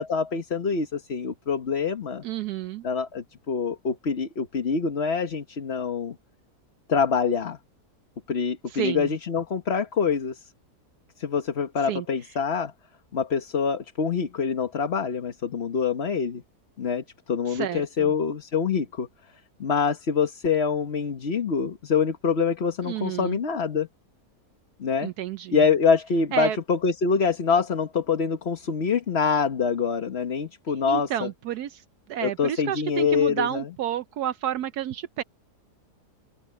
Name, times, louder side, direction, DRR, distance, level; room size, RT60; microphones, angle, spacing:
voice 1, 0.0-2.2 2.8-6.1 6.9-7.6 8.3-10.4 11.2-12.7 13.1-16.4 16.8-19.1 19.6-23.9 24.8-25.1 25.5-31.3 32.2-33.7, left 6 dB, 40° left, 1.4 m, -25 dB
voice 2, 2.2-2.8 8.7-9.1 11.9-12.0 17.5-18.1 22.8-23.4 25.0-25.6 26.3-26.6 30.7-31.8 32.1-35.2, right 11 dB, 75° right, 1.2 m, -30 dB
open air
omnidirectional pair, 1.7 m